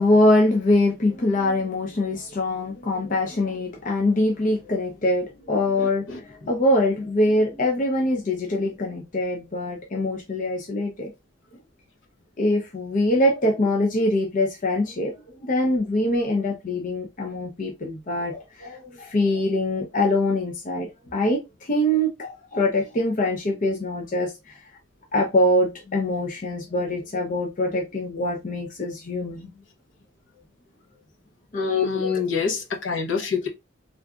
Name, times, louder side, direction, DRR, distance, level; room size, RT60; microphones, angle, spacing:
voice 1, 0.0-11.1 12.4-15.1 15.4-24.6 25.1-29.5 31.5-32.1, left 1 dB, 40° left, 0.5 m, -23 dB
voice 2, 31.8-33.5, left 5 dB, 70° left, 0.9 m, -26 dB
3.5 x 2.5 x 2.3 m
head